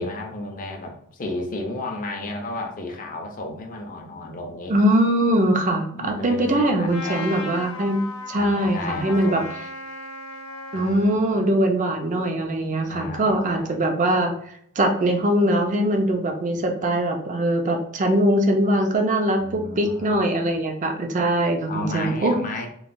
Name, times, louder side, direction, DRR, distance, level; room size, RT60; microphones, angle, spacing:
voice 1, 0.0-4.7 5.9-7.4 8.3-9.5 10.7-11.1 12.9-13.9 19.4-20.1 21.7-22.7, left 2 dB, 40° left, 2 dB, 0.5 m, -33 dB
voice 2, 4.7-8.0 8.3-9.4 10.7-14.3 14.8-22.3, right 1 dB, 35° right, 3 dB, 0.5 m, -22 dB
Trumpet, 6.9-11.2, left 3 dB, 75° left, 0.7 m, -36 dB
3.0 x 2.2 x 2.5 m, 0.68 s
head